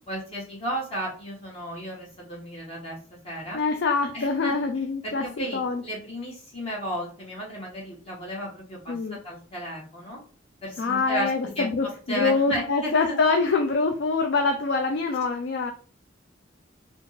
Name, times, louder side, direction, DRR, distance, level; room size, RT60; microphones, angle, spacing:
voice 1, 0.1-3.0 3.2-3.6 4.1-4.5 5.0-10.2 10.6-11.3 11.6-11.7 12.1-13.2, equal, 30° left, -4 dB, 1.2 m, -33 dB
voice 2, 3.5-5.8 8.9-9.2 10.8-15.7, left 4 dB, 60° left, 5 dB, 0.3 m, -25 dB
3.5 x 2.5 x 2.6 m, 0.42 s
head